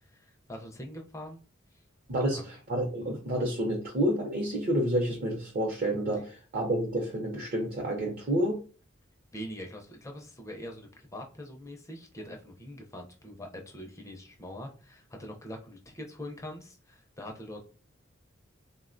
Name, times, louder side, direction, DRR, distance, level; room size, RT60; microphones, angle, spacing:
voice 1, 0.0-1.4 1.7-1.8 2.3-2.5 9.3-17.6, left 1 dB, 15° left, 2 dB, 0.4 m, -43 dB
voice 2, 2.1-8.6, right 1 dB, 45° right, -1 dB, 0.6 m, -29 dB
3.4 x 2.1 x 2.4 m, 0.36 s
head